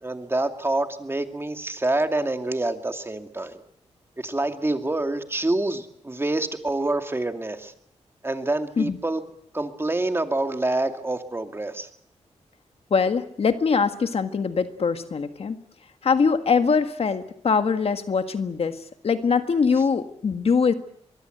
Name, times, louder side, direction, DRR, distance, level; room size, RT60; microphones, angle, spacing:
voice 1, 0.0-3.6 4.2-7.7 8.2-9.2 9.5-11.9, right 2 dB, 20° right, 6 dB, 2.5 m, -26 dB
voice 2, 12.9-15.6 16.0-18.8 19.0-20.7, left 5 dB, 60° left, 8 dB, 1.7 m, -22 dB
24.5 x 22.0 x 8.0 m, 0.70 s
wide cardioid pair, 90°, 12 cm